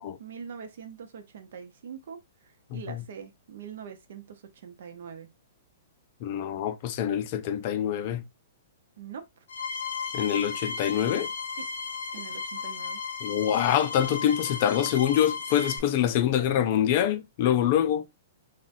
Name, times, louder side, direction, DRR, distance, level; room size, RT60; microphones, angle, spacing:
voice 1, 0.2-2.2 2.7-5.3 9.0-9.2 11.6-11.7 12.1-13.0, right 7 dB, 60° right, 0.7 m, -43 dB
voice 2, 2.7-3.0 6.2-8.2 10.1-11.3 13.2-18.0, left 10 dB, 35° left, 0.3 m, -25 dB
sound 1, 9.5-15.8, left 5 dB, 90° left, 0.5 m, -35 dB
3.8 x 2.2 x 2.5 m
hypercardioid pair, 170°, 0 cm